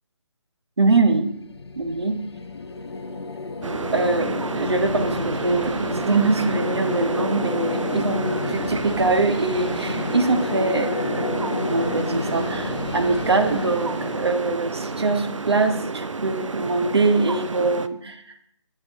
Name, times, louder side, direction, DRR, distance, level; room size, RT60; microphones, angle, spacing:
sound 1, 0.8-15.9, left 3 dB, 55° left, 0.5 m, -31 dB
voice 1, 0.8-1.3 1.8-2.2 3.9-18.2, right 3 dB, 55° right, 7 dB, 0.9 m, -23 dB
sound 2, 3.6-17.9, right 4 dB, 75° right, 0.4 m, -30 dB
7.4 x 5.9 x 3.7 m, 0.68 s
figure-of-eight pair, 150°, 16 cm